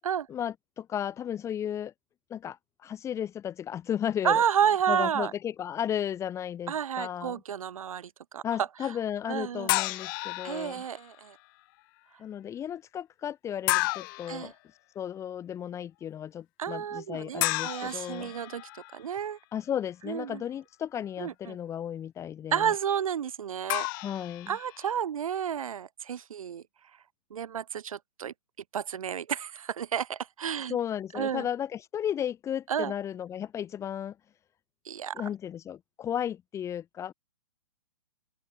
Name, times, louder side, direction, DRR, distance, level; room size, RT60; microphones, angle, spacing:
voice 1, 0.3-1.9 2.3-4.4 4.9-7.4 8.4-10.8 12.2-14.5 14.9-18.3 19.5-22.7 24.0-24.6 30.7-34.2 35.1-37.1, left 9 dB, 15° left, 2.6 m, -34 dB
voice 2, 4.2-5.3 6.7-8.9 9.3-9.7 10.4-11.4 14.3-14.5 16.6-19.4 20.1-20.4 21.2-21.6 22.5-23.9 24.5-26.6 27.3-28.3 28.7-30.8 31.1-31.5 32.7-32.9 34.8-35.2, right 8 dB, 70° right, 6.4 m, -31 dB
sound 1, 9.7-11.0 13.7-14.4 17.4-19.0 23.7-24.9, left 25 dB, 35° left, 4.8 m, -31 dB
open air
hypercardioid pair, 150°, 18 cm